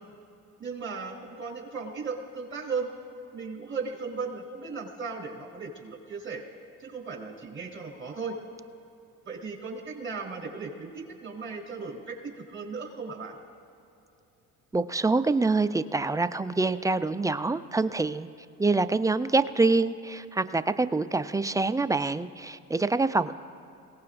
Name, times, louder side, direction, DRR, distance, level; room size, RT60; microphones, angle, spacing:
voice 1, 0.6-2.9 3.3-6.4 6.8-8.4 9.2-13.4, right 4 dB, 30° right, 0 dB, 3.9 m, -36 dB
voice 2, 14.7-18.3 18.6-23.4, right 3 dB, 10° right, 12 dB, 0.5 m, -25 dB
27.5 x 17.5 x 2.6 m, 2.6 s
hypercardioid pair, 60°, 42 cm